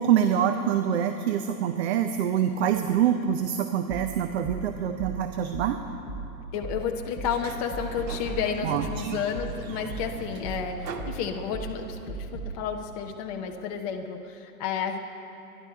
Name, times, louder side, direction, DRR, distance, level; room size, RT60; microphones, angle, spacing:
voice 1, 0.0-5.8 8.6-9.2, right 9 dB, 40° right, 8 dB, 0.6 m, -25 dB
sound 1, 3.9-12.6, right 3 dB, 5° right, 2.3 m, -38 dB
voice 2, 6.5-15.0, left 7 dB, 25° left, 2 dB, 0.5 m, -31 dB
Sliding door, 7.2-11.9, right 4 dB, 85° right, 1.4 m, -41 dB
24.0 x 11.0 x 4.6 m, 3.0 s
hypercardioid pair, 150°, 49 cm